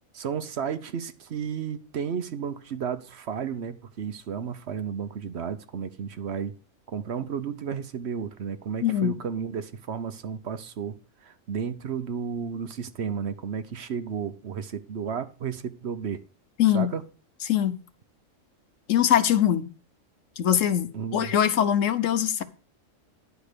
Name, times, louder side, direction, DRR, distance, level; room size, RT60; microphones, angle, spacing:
voice 1, 0.1-6.5 6.9-16.2 16.7-17.0 20.9-21.3, right 7 dB, 60° right, 1.0 m, -33 dB
voice 2, 8.8-9.2 16.6-16.9 17.5-17.7 18.9-19.7 20.4-22.4, left 10 dB, 75° left, 1.2 m, -22 dB
10.5 x 4.8 x 6.7 m
omnidirectional pair, 1.3 m